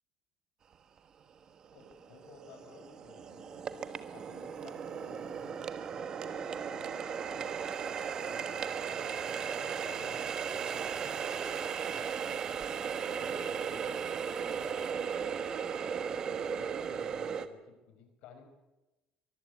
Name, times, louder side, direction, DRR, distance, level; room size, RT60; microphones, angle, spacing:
Water tap faucet, 1.0-1.1 1.6-17.5, right 7 dB, 35° right, 1.3 m, -36 dB
voice 1, 1.7-3.7 4.1-7.6 8.1-12.5 12.9-15.8 16.2-18.4, left 5 dB, 65° left, 6 dB, 5.3 m, -55 dB
23.5 x 15.5 x 9.5 m, 1.1 s
cardioid pair, 160°, 2 cm